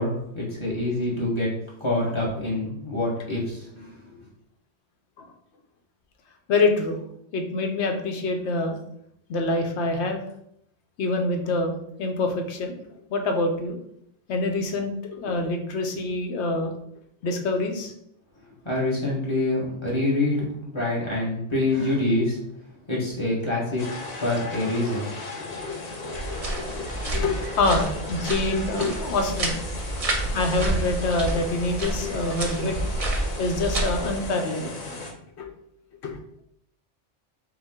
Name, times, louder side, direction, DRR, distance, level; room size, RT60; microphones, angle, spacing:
voice 1, 0.0-1.5 1.8-4.2 18.6-22.5 22.9-23.9 24.2-25.1 25.4-25.5, left 2 dB, 25° left, -5 dB, 1.3 m, -26 dB
voice 2, 6.5-7.0 7.3-8.8 9.3-10.2 11.0-12.8 13.1-13.8 14.3-16.7 17.2-17.9 25.5-29.6 30.3-32.8 33.3-34.8 35.4-35.5 36.0-36.2, left 2 dB, 75° left, 4 dB, 1.0 m, -26 dB
sound 1, 23.8-35.1, left 2 dB, 40° left, 0.7 m, -36 dB
sound 2, 26.1-34.2, right 1 dB, 40° right, 0.6 m, -30 dB
4.9 x 2.1 x 3.6 m, 0.73 s
omnidirectional pair, 1.2 m